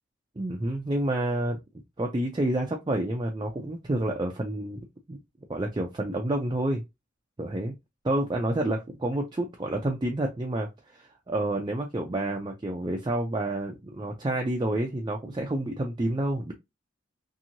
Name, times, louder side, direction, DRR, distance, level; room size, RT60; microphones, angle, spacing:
voice 1, 0.4-1.6 2.0-4.8 5.1-5.2 5.5-6.8 7.4-7.7 8.0-16.5, right 1 dB, 20° right, 0.4 m, -29 dB
2.9 x 2.6 x 2.5 m
head